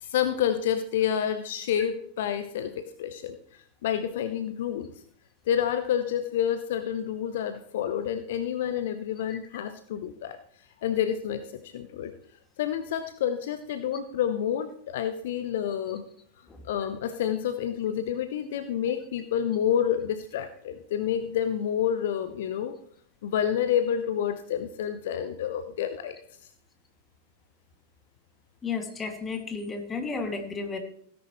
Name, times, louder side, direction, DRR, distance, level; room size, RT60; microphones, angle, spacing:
voice 1, 0.0-4.9 5.5-10.4 10.8-12.1 12.6-16.0 16.6-22.7 23.2-26.2, left 9 dB, 55° left, 10 dB, 0.8 m, -29 dB
voice 2, 28.6-30.8, left 4 dB, 20° left, 4 dB, 2.3 m, -33 dB
16.5 x 10.5 x 3.2 m, 0.63 s
figure-of-eight pair, 90°, 0 cm